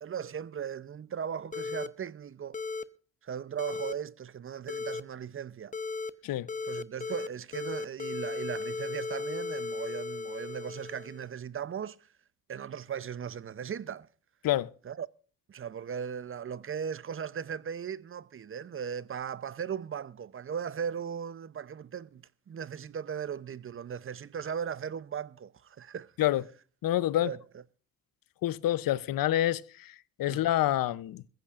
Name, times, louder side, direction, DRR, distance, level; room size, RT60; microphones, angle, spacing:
voice 1, 0.0-2.6 3.2-5.8 6.7-12.1 12.5-14.1 14.8-15.1 15.5-26.1 27.2-27.4 30.3-30.5, right 7 dB, 35° right, 0.6 m, -38 dB
sound 1, 1.5-1.9 2.5-2.8 3.6-3.9 4.7-5.0 5.7-6.1 6.5-7.3 7.5-11.3, left 4 dB, 20° left, 0.8 m, -36 dB
voice 2, 26.8-27.3 28.4-31.2, left 13 dB, 75° left, 0.7 m, -27 dB
21.5 x 15.0 x 2.5 m
cardioid pair, 85°, 35 cm